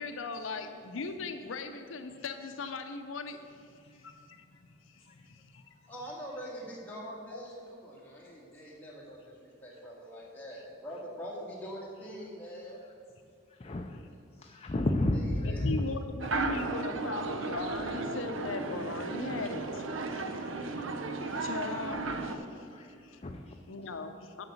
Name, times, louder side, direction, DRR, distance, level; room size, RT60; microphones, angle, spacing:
voice 1, 0.0-5.7 7.3-7.5 13.9-14.1 14.6-14.7 15.4-23.2 23.7-24.4, left 3 dB, 80° left, 7 dB, 0.6 m, -40 dB
voice 2, 5.9-9.2 9.6-12.8 15.1-15.6, equal, 10° left, -5 dB, 2.0 m, -43 dB
voice 3, 13.6-14.0 14.4-15.7 22.7-22.9 23.2-23.5, left 1 dB, 30° left, 3 dB, 0.5 m, -31 dB
sound 1, 16.2-22.4, right 3 dB, 80° right, 0.7 m, -35 dB
7.8 x 5.9 x 7.1 m, 2.4 s
head